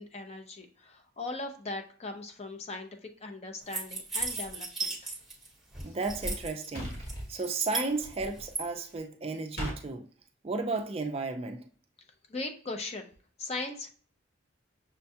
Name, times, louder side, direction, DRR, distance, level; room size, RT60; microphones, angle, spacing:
voice 1, 0.0-5.0 12.3-13.1 13.4-13.9, left 2 dB, 30° left, 0.5 m, -39 dB
sound 1, 3.7-5.5 5.7-6.7 7.1-8.6, right 3 dB, ahead, 1.0 m, -35 dB
voice 2, 5.8-10.1 10.4-11.7, right 3 dB, 30° right, 0.3 m, -34 dB
sound 2, 6.7-7.3 9.6-9.8, equal, 50° left, 1.3 m, -35 dB
6.2 x 2.2 x 2.7 m
head